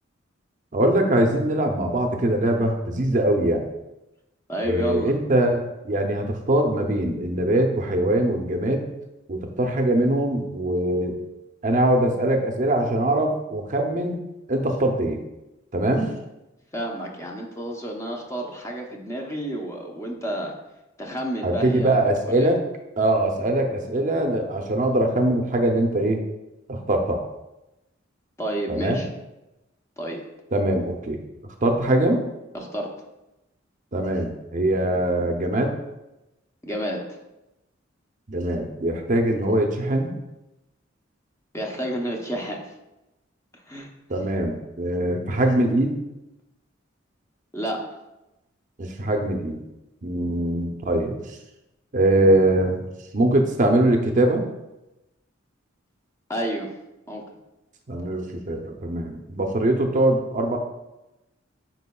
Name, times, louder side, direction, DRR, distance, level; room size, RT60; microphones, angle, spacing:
voice 1, 0.7-3.6 4.6-8.9 9.3-11.2 11.6-14.2 14.5-15.2 15.7-16.1 21.4-22.6 23.0-26.2 26.7-27.2 28.7-29.0 30.5-31.2 31.6-32.2 33.9-35.7 38.3-40.1 44.1-45.9 48.8-49.6 50.0-51.2 51.9-52.8 53.1-54.4 57.9-60.6, right 1 dB, 40° right, 3 dB, 0.6 m, -22 dB
voice 2, 4.5-5.1 16.7-20.5 21.0-22.0 22.4-22.5 28.4-29.1 30.0-30.2 32.5-32.9 36.6-37.0 41.5-42.6 43.7-43.9 47.5-47.8 56.3-56.7 57.1-57.2, equal, 15° left, 1 dB, 0.8 m, -30 dB
9.6 x 4.5 x 2.3 m, 0.96 s
head